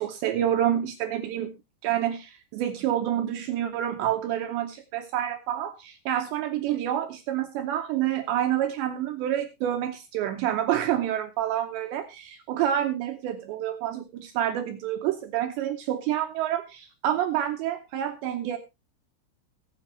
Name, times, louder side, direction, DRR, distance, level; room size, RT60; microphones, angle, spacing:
voice 1, 0.0-1.5 1.8-18.6, right 11 dB, 80° right, 7 dB, 2.6 m, -28 dB
22.5 x 7.5 x 2.8 m, 0.24 s
omnidirectional pair, 5.9 m